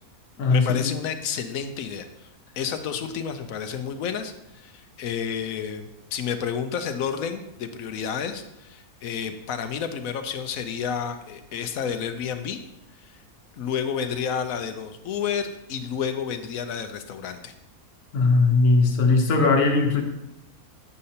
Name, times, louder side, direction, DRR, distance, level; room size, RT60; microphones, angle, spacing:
voice 1, 0.5-2.1 2.6-12.6 13.0-13.2 13.5-17.5, left 7 dB, 70° left, 8 dB, 1.0 m, -30 dB
voice 2, 18.1-20.0, left 3 dB, 90° left, 3 dB, 1.4 m, -19 dB
8.3 x 6.5 x 2.8 m, 0.85 s
omnidirectional pair, 1.6 m